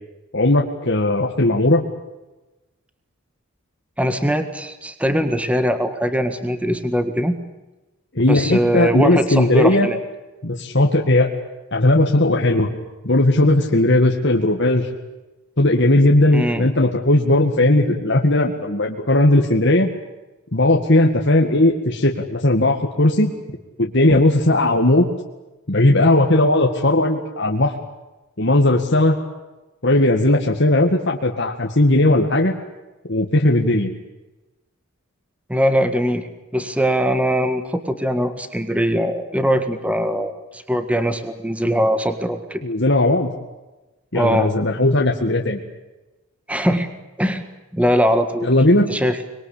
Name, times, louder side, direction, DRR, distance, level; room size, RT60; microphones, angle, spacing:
voice 1, 0.3-1.8 8.1-9.9 10.4-11.3 11.7-12.7 13.0-14.9 15.6-19.9 20.5-23.3 23.8-25.1 25.7-27.7 28.4-29.1 29.8-32.6 33.1-33.9 42.6-43.3 44.1-45.6 48.4-48.9, left 1 dB, 55° left, 1 dB, 2.1 m, -17 dB
voice 2, 4.0-7.4 8.3-10.0 16.3-16.7 35.5-42.6 44.1-44.5 46.5-46.9 47.2-47.4 47.7-48.5 48.9-49.3, equal, 5° right, 8 dB, 1.8 m, -21 dB
25.0 x 22.5 x 8.6 m, 1.1 s
head